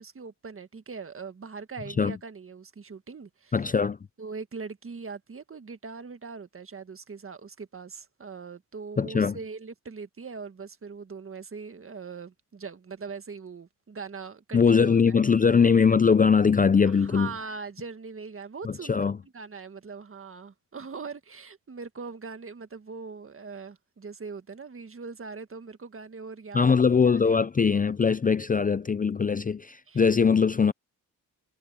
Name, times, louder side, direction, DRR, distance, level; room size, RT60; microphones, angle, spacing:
voice 1, 0.0-3.5 4.2-15.2 16.8-19.1 19.3-26.7 29.9-30.0, right 5 dB, 40° right, 1.7 m, -41 dB
voice 2, 3.5-4.0 9.0-9.4 14.5-17.3 18.6-19.2 26.5-30.7, left 5 dB, 25° left, 0.5 m, -21 dB
cardioid pair, 75°, 34 cm